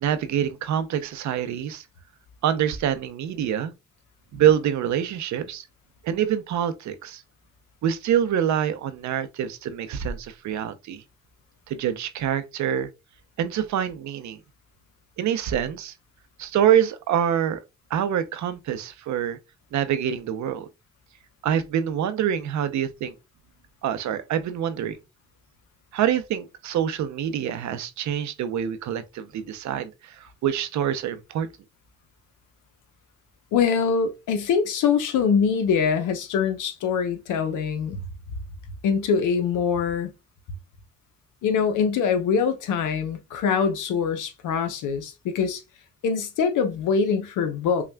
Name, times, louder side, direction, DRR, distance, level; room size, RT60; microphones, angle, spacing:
voice 1, 0.0-1.8 2.4-3.7 4.3-5.6 6.0-7.2 7.8-11.0 11.7-12.9 13.4-14.4 15.2-15.9 16.4-17.6 17.9-19.4 19.7-20.7 21.4-23.1 23.8-25.0 25.9-31.5, right 9 dB, 70° right, 0.7 m, -25 dB
voice 2, 33.5-38.1 38.8-40.1 41.4-45.6 46.0-47.9, left 6 dB, 85° left, 0.8 m, -23 dB
5.6 x 2.4 x 2.2 m
cardioid pair, 90°, 30 cm